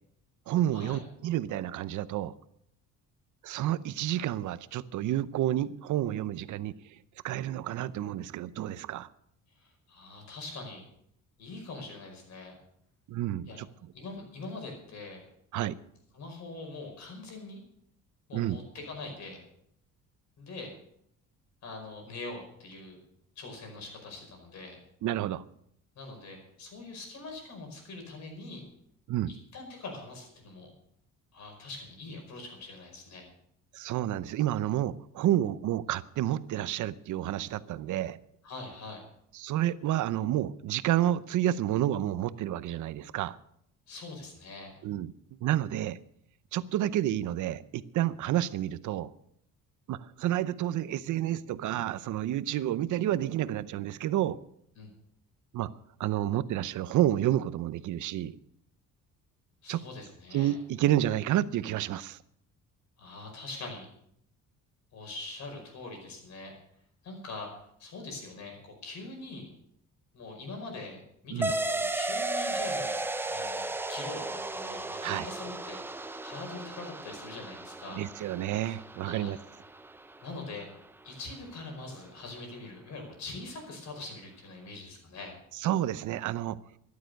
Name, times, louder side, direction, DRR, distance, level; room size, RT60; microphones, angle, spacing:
voice 1, 0.5-2.3 3.4-7.0 7.2-9.1 13.1-13.7 15.5-15.8 18.3-18.6 25.0-25.4 29.1-29.3 33.7-38.2 39.3-43.4 44.8-45.1 45.4-46.0 46.5-49.1 49.9-54.4 55.5-55.7 56.0-58.4 59.7-59.8 60.3-62.2 71.3-71.5 75.0-75.3 77.9-79.4 85.6-86.6, right 12 dB, 65° right, 0.7 m, -30 dB
voice 2, 9.6-10.8 11.4-12.6 13.5-13.6 13.9-15.2 16.1-17.6 18.3-19.4 20.4-20.7 21.6-23.0 23.4-24.8 26.0-28.7 29.3-30.7 31.3-33.3 38.4-39.0 43.9-44.7 54.8-54.9 59.6-60.6 63.0-63.9 64.9-66.5 67.0-67.5 67.8-69.5 70.1-72.9 73.3-78.1 78.5-79.4 80.2-80.7 81.0-85.3, left 3 dB, 55° left, 5.3 m, -43 dB
sound 1, 71.4-80.4, right 2 dB, 5° right, 0.4 m, -35 dB
13.0 x 11.5 x 6.5 m
cardioid pair, 150°, 32 cm